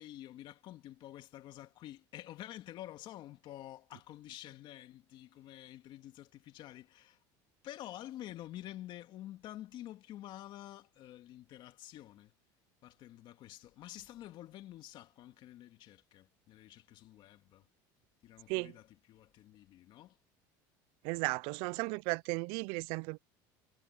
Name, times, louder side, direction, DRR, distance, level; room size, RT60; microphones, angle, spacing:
voice 1, 0.0-7.2 7.6-12.3 12.8-17.7 18.2-20.2, left 13 dB, 55° left, 2.5 m, -49 dB
voice 2, 21.0-23.2, right 27 dB, 70° right, 0.4 m, -35 dB
supercardioid pair, 120°, 10 cm